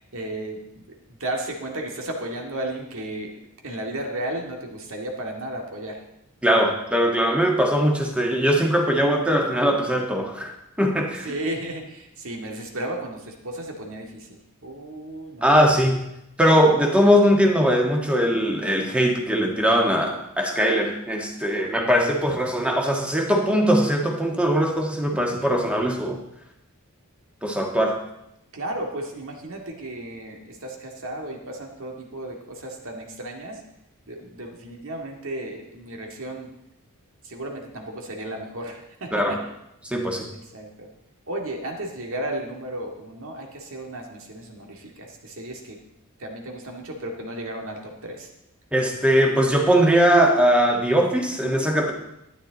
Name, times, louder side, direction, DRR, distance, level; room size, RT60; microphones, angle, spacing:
voice 1, 0.0-3.3 3.6-6.0 11.3-15.5 28.5-33.6 34.1-36.5 37.2-39.4 40.5-40.9 41.3-45.8 46.2-48.3, right 1 dB, 65° right, 2 dB, 2.1 m, -34 dB
voice 2, 6.4-10.5 10.8-11.3 15.4-16.0 16.4-26.2 27.4-28.0 39.1-39.3 39.8-40.3 48.7-51.9, equal, 5° right, 1 dB, 1.6 m, -20 dB
12.5 x 10.0 x 4.0 m, 0.83 s
head